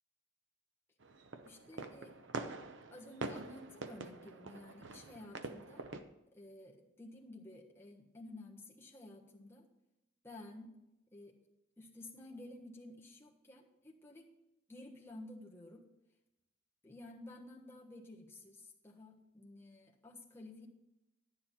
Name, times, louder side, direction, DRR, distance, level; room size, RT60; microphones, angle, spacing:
sound 1, 1.0-6.0, right 3 dB, 80° right, 0.8 m, -45 dB
voice 1, 1.4-2.1 2.9-5.8 6.3-9.7 10.2-10.7 11.1-11.4 11.8-14.3 14.7-15.8 16.8-20.7, left 2 dB, 15° left, -3 dB, 1.4 m, -53 dB
11.0 x 9.7 x 4.3 m, 0.93 s
head